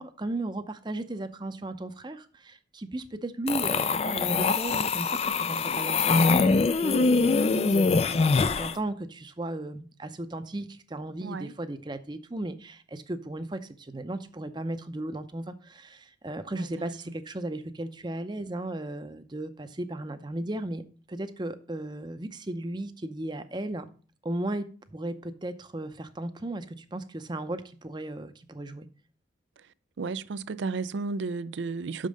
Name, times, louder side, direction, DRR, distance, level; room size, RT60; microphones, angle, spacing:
voice 1, 0.0-23.9 24.2-28.9, right 1 dB, 25° right, 0.6 m, -36 dB
sound 1, 3.5-8.8, left 4 dB, 35° left, 0.3 m, -24 dB
voice 2, 11.2-11.5 16.5-16.7 30.0-32.1, right 4 dB, 75° right, 0.4 m, -33 dB
6.4 x 5.2 x 6.3 m
head